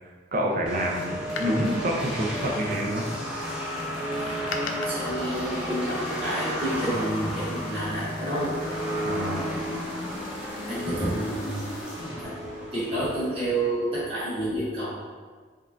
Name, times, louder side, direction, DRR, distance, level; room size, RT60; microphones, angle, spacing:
voice 1, 0.3-3.1 9.0-9.5, equal, 45° right, 0 dB, 0.6 m, -27 dB
sound 1, 0.7-13.7, equal, 5° right, 0.7 m, -33 dB
sound 2, 0.9-12.2, left 1 dB, 30° left, 0.7 m, -39 dB
Door, 1.4-3.0 3.9-6.8 7.7-8.8 9.2-9.3, left 4 dB, 75° left, 0.4 m, -41 dB
voice 2, 4.8-8.5 10.7-11.7 12.1-12.3 12.7-14.9, right 1 dB, 30° right, -10 dB, 1.5 m, -29 dB
5.2 x 2.4 x 2.5 m, 1.5 s
head